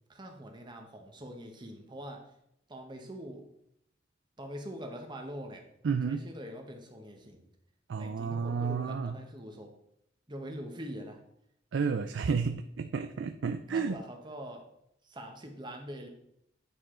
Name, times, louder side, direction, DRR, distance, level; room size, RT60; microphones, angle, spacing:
voice 1, 0.1-2.3 2.7-3.4 4.4-5.7 6.1-7.5 8.0-9.7 10.3-11.2 13.7-14.6 15.0-16.1, equal, 25° right, 3 dB, 1.0 m, -43 dB
voice 2, 5.8-6.3 7.9-9.2 11.7-14.0, right 5 dB, 70° right, 7 dB, 0.4 m, -31 dB
9.0 x 4.8 x 3.7 m, 0.75 s
head